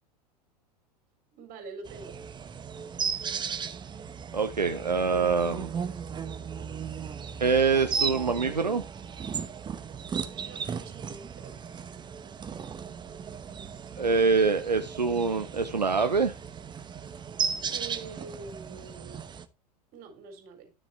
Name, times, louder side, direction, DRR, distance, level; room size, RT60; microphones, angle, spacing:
voice 1, 1.3-2.1 10.4-11.5 17.7-19.2 19.9-20.7, right 4 dB, 45° right, 4.0 m, -45 dB
sound 1, 1.8-19.4, right 6 dB, 20° right, 1.0 m, -36 dB
voice 2, 4.3-5.7 7.4-8.8 14.0-16.3, right 4 dB, 90° right, 0.8 m, -25 dB
12.5 x 7.0 x 2.9 m
figure-of-eight pair, 85°, 21 cm